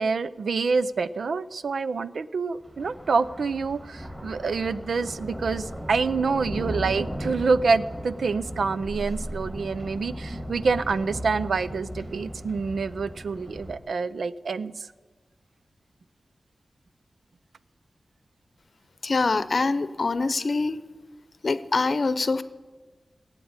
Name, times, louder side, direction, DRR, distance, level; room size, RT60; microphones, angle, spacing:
voice 1, 0.0-14.9, right 4 dB, 90° right, 15 dB, 0.5 m, -27 dB
Thunder, 2.6-13.8, equal, 10° right, 1.9 m, -36 dB
voice 2, 19.0-20.8 21.4-22.4, left 3 dB, 55° left, 14 dB, 0.7 m, -24 dB
17.5 x 8.4 x 8.8 m, 1.4 s
wide cardioid pair, 105°, 0 cm